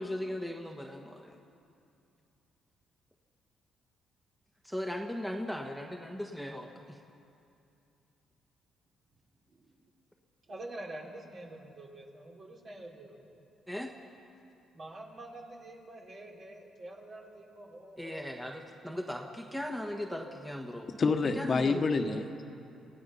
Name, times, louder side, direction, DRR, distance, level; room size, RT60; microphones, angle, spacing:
voice 1, 0.0-1.4 4.6-7.0 13.7-13.9 18.0-20.9 21.4-22.0, left 1 dB, ahead, 2 dB, 1.5 m, -38 dB
voice 2, 10.5-13.3 14.7-19.0, right 1 dB, 50° right, -1 dB, 3.9 m, -47 dB
voice 3, 21.0-22.4, left 4 dB, 45° left, 5 dB, 1.3 m, -28 dB
28.5 x 16.5 x 5.7 m, 2.6 s
cardioid pair, 90°, 0 cm